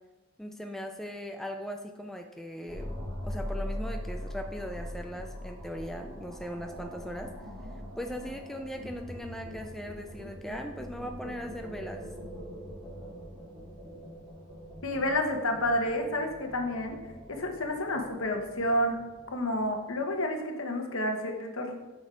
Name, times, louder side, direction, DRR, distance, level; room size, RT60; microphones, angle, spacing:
voice 1, 0.4-3.0 3.2-7.3 8.0-12.0, equal, ahead, 3 dB, 0.4 m, -39 dB
sound 1, 2.7-19.9, equal, 15° right, 2.8 m, -42 dB
voice 2, 14.8-17.0 17.3-19.0 19.3-21.8, left 1 dB, 70° left, 4 dB, 1.1 m, -30 dB
9.0 x 6.3 x 3.8 m, 1.1 s
head